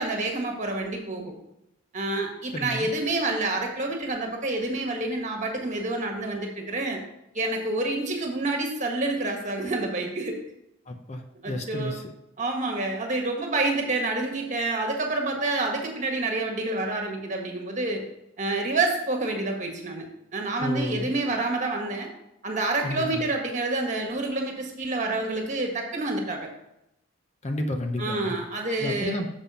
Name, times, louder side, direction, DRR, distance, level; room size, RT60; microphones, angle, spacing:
voice 1, 0.0-1.3 1.9-7.0 7.3-10.4 11.4-12.0 12.4-18.0 18.4-22.1 22.4-26.5 28.0-29.2, right 2 dB, 35° right, 2 dB, 1.6 m, -28 dB
voice 2, 2.5-2.9 10.9-12.1 20.6-21.1 22.8-23.2 27.4-28.3 28.8-29.3, left 1 dB, 35° left, 4 dB, 0.7 m, -31 dB
7.0 x 5.5 x 5.6 m, 0.83 s
head